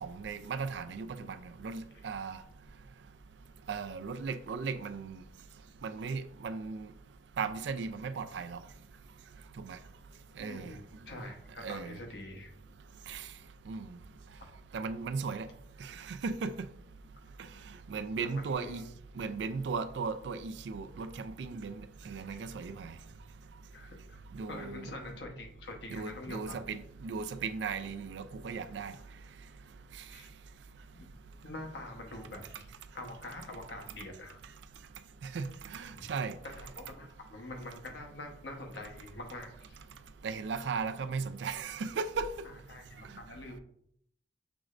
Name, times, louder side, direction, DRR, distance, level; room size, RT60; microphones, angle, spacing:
voice 1, 0.0-2.4 3.7-5.2 5.8-6.9 7.4-8.6 9.6-9.8 10.4-10.7 11.6-12.0 13.1-13.3 13.7-14.0 14.7-15.5 15.8-16.7 17.9-18.8 19.2-21.8 22.1-22.9 24.3-24.9 25.9-28.9 35.3-36.4 40.2-42.3, right 5 dB, 75° right, 0.4 m, -37 dB
voice 2, 10.4-12.5 18.3-18.9 22.3-22.4 23.7-24.2 24.5-26.6 30.1-30.3 30.9-31.1 31.4-32.7 32.9-34.4 35.9-36.1 36.5-39.8 42.7-43.6, left 1 dB, 80° left, 1.0 m, -45 dB
6.1 x 3.1 x 2.5 m
head